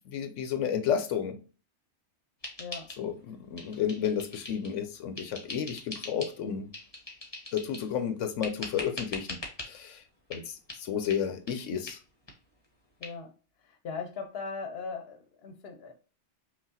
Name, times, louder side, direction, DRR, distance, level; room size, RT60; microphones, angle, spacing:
voice 1, 0.1-1.4 3.0-6.7 7.5-10.0 10.3-12.0, left 8 dB, 90° left, 1.0 m, -32 dB
sound 1, 2.4-3.3 3.6-4.8 5.2-6.4 6.7-7.9 8.4-9.7 10.3-10.4 10.7-10.8 11.1-11.2 11.5-11.6 11.9-12.0 12.3-12.4 12.6-12.7 13.0-13.1, left 2 dB, 25° left, 1.1 m, -41 dB
voice 2, 13.0-13.3 13.8-15.9, left 5 dB, 60° left, 1.0 m, -39 dB
5.7 x 2.4 x 2.7 m
omnidirectional pair, 1.2 m